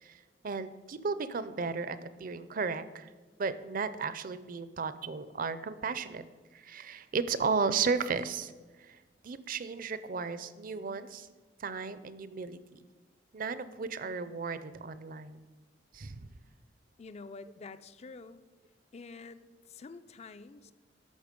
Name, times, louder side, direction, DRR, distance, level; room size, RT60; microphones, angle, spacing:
voice 1, 0.0-3.1 3.4-6.2 6.5-8.5 8.8-9.0 9.2-11.3 11.6-12.6 13.3-15.4 15.9-16.2, right 5 dB, 50° right, 14 dB, 0.5 m, -34 dB
voice 2, 17.0-18.4 18.9-20.7, left 4 dB, 35° left, 13 dB, 0.4 m, -48 dB
11.5 x 6.8 x 5.2 m, 1.3 s
head